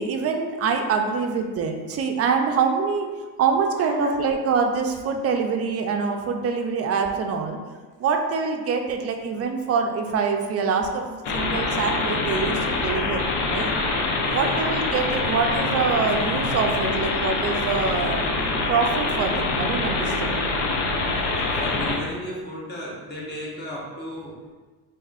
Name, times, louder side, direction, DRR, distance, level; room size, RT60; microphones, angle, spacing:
voice 1, 0.0-3.1 3.4-7.6 8.0-13.7 14.3-18.3 18.6-20.4, right 5 dB, 35° right, 4 dB, 0.4 m, -25 dB
voice 2, 3.8-4.2 14.3-14.7 18.3-18.4 21.1-24.3, equal, 25° left, -4 dB, 1.1 m, -35 dB
sound 1, 11.2-22.0, left 3 dB, 70° left, 0.7 m, -25 dB
4.6 x 2.6 x 2.4 m, 1.4 s
cardioid pair, 105°, 42 cm